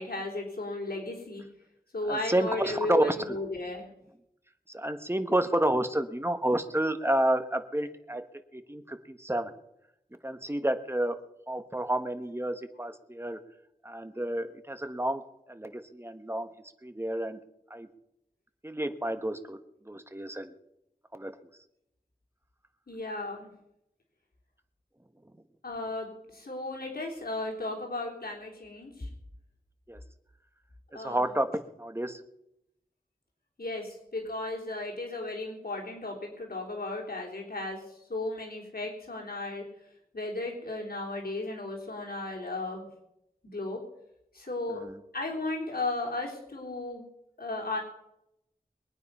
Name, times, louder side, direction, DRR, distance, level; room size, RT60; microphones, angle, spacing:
voice 1, 0.0-1.4 1.9-3.9 22.9-23.5 25.6-29.1 30.9-31.3 33.6-39.6 40.1-42.9 43.4-43.8 44.3-44.8 45.1-47.1 47.4-47.8, left 2 dB, 85° left, -2 dB, 3.6 m, -35 dB
voice 2, 2.1-3.4 4.7-8.2 8.5-9.5 10.2-11.2 11.5-13.4 13.8-15.2 15.5-16.5 16.8-17.4 17.7-17.9 18.6-19.6 19.9-20.5 21.1-21.3 29.9-30.0 30.9-31.5 31.8-32.2 44.8-44.9, right 1 dB, 15° right, 8 dB, 1.4 m, -30 dB
23.0 x 9.5 x 5.6 m, 0.83 s
wide cardioid pair, 55°, 15 cm